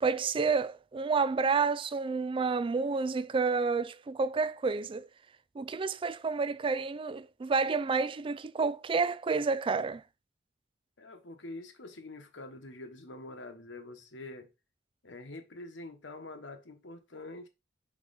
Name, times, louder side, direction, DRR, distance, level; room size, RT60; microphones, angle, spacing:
voice 1, 0.0-5.1 5.6-10.0, right 4 dB, 30° right, 0.3 m, -29 dB
voice 2, 11.0-14.5 15.0-17.5, left 2 dB, 70° left, 1.2 m, -45 dB
5.4 x 4.5 x 4.1 m
head